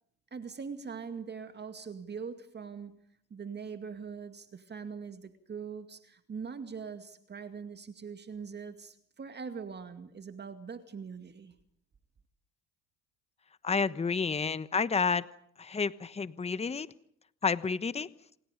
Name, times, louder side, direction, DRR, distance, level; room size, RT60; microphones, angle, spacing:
voice 1, 0.3-3.0 3.3-11.5, right 6 dB, 30° right, 2.3 m, -42 dB
voice 2, 13.6-15.3 15.6-16.9 17.4-18.1, left 5 dB, 20° left, 1.2 m, -30 dB
28.0 x 27.0 x 5.2 m
hypercardioid pair, 75°, 34 cm